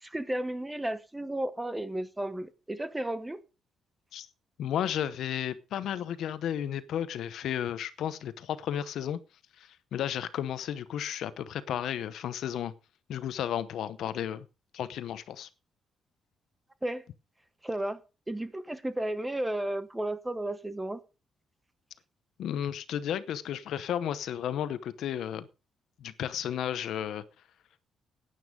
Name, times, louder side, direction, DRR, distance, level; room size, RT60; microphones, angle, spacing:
voice 1, 0.0-3.4 16.8-17.0 17.6-18.0 18.3-21.0, right 1 dB, 10° right, 0.9 m, -33 dB
voice 2, 4.6-9.2 9.6-12.7 13.1-14.5 14.7-15.5 22.4-25.5 26.0-27.2, left 10 dB, 65° left, 0.8 m, -33 dB
12.5 x 9.3 x 5.1 m
cardioid pair, 170°, 0 cm